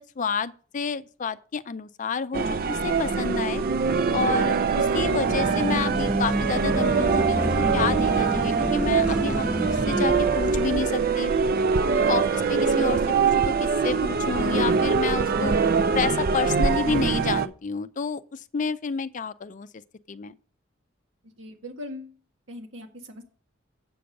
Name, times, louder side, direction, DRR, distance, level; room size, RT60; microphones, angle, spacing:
voice 1, 0.0-3.6 4.1-11.3 12.1-13.5 13.8-15.5 15.9-19.7 20.1-20.4, left 5 dB, 40° left, 0.4 m, -30 dB
sound 1, 2.3-17.5, right 5 dB, 50° right, 0.5 m, -23 dB
sound 2, 4.9-10.8, right 1 dB, 5° right, 1.2 m, -29 dB
voice 2, 21.4-22.1 22.5-23.2, left 1 dB, 70° right, 1.7 m, -39 dB
7.7 x 6.8 x 5.1 m
head